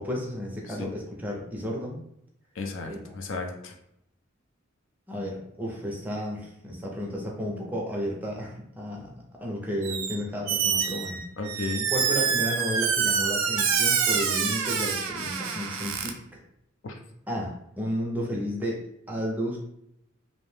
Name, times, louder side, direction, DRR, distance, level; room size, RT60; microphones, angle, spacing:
voice 1, 0.0-2.0 2.8-3.2 5.1-11.2 11.9-16.2 17.3-19.6, equal, 10° right, -2 dB, 0.4 m, -32 dB
voice 2, 2.6-3.7 11.4-11.9 16.8-17.0, left 3 dB, 60° left, 3 dB, 0.4 m, -34 dB
Squeak, 9.8-10.2 10.5-16.1, right 6 dB, 90° right, 0.4 m, -26 dB
2.6 x 2.0 x 3.1 m, 0.77 s
head